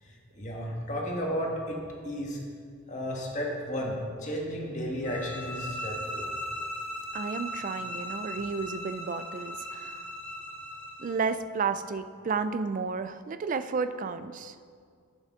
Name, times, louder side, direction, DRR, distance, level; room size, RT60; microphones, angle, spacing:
voice 1, 0.0-2.4 2.9-6.3, equal, 35° left, -2 dB, 1.5 m, -33 dB
sound 1, 5.0-11.2, equal, 10° left, 1.3 m, -38 dB
voice 2, 7.1-10.1 11.0-14.5, right 5 dB, 35° right, 11 dB, 0.3 m, -32 dB
11.0 x 8.1 x 3.7 m, 2.1 s
head